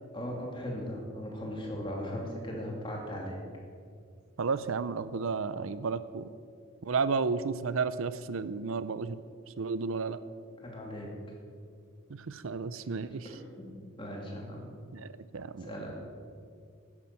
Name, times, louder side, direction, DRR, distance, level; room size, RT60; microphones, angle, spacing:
voice 1, 0.1-3.4 10.6-11.1 12.8-12.9 13.6-14.7 15.6-15.9, equal, 25° left, -1 dB, 2.7 m, -38 dB
voice 2, 4.4-6.3 6.8-9.2 9.6-10.2 12.1-13.3 14.9-15.7, right 4 dB, 80° right, 14 dB, 0.5 m, -32 dB
11.0 x 9.9 x 7.5 m, 2.2 s
head